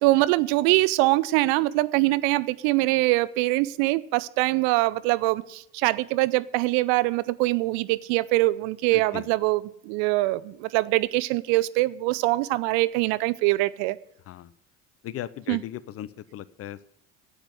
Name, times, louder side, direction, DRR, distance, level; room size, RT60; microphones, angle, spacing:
voice 1, 0.0-14.0 15.5-15.6, right 20 dB, 55° right, 0.6 m, -23 dB
voice 2, 8.9-9.3 14.3-14.5 15.0-16.8, left 12 dB, 35° left, 0.6 m, -37 dB
10.0 x 8.2 x 9.7 m
figure-of-eight pair, 60°, 43 cm